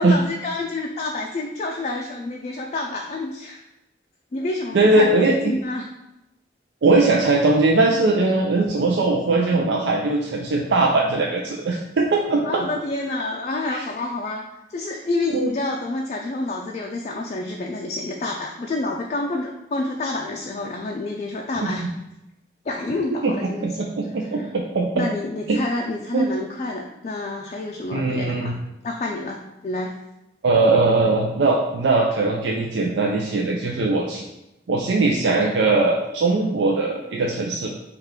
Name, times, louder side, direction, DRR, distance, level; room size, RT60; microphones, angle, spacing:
voice 1, 0.0-3.6 4.3-5.9 12.5-21.9 22.7-23.9 24.3-24.5 24.9-28.5 28.8-29.9, left 2 dB, 40° left, 1 dB, 0.3 m, -28 dB
voice 2, 4.7-5.3 6.8-12.7 13.7-13.8 15.3-15.5 21.6-21.9 23.2-23.3 23.6-25.1 25.5-25.6 26.1-26.3 27.9-28.5 30.4-34.2 34.7-37.7, right 3 dB, 85° right, -1 dB, 0.4 m, -20 dB
5.5 x 2.4 x 3.6 m, 0.92 s
head